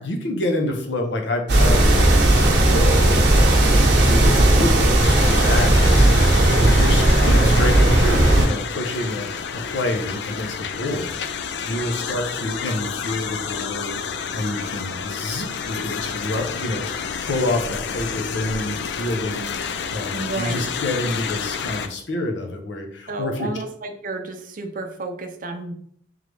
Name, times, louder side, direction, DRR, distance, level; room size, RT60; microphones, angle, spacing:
voice 1, 0.0-1.9 2.3-23.5, left 1 dB, 85° left, 3 dB, 0.8 m, -28 dB
sound 1, 1.5-8.5, right 1 dB, 65° right, 0.9 m, -15 dB
sound 2, 5.0-21.9, left 6 dB, 65° left, 0.4 m, -30 dB
voice 2, 20.1-20.7 23.1-25.7, right 2 dB, 50° right, 6 dB, 0.5 m, -31 dB
3.8 x 3.1 x 3.3 m, 0.64 s
head